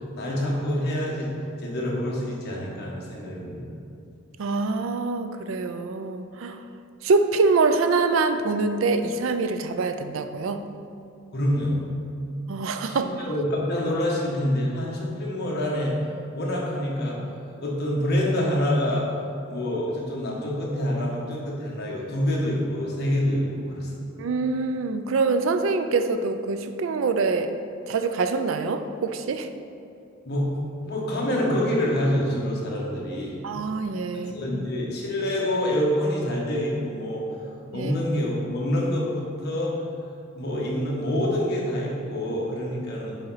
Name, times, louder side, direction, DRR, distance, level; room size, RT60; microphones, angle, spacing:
voice 1, 0.0-1.3 1.6-3.8 11.3-11.8 12.8-15.9 16.3-17.2 17.6-19.1 19.5-24.1 30.2-30.5 30.8-33.4 34.1-37.2 37.7-39.8 40.3-43.2, left 1 dB, 50° left, -4 dB, 1.2 m, -26 dB
voice 2, 4.4-6.6 7.0-10.6 12.5-13.3 24.2-27.5 27.9-29.5 33.4-34.4 37.7-38.0, right 4 dB, 60° right, 8 dB, 0.4 m, -25 dB
6.7 x 4.3 x 4.0 m, 2.5 s
head